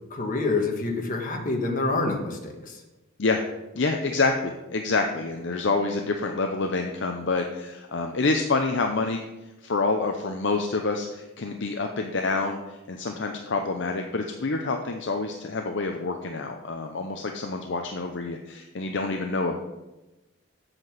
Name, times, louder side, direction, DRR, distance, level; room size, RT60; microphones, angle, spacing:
voice 1, 0.1-2.8, left 3 dB, 40° left, 1 dB, 1.6 m, -27 dB
voice 2, 3.7-9.2 9.6-19.6, left 3 dB, 60° left, 4 dB, 0.7 m, -27 dB
8.0 x 5.9 x 7.4 m, 1.0 s
head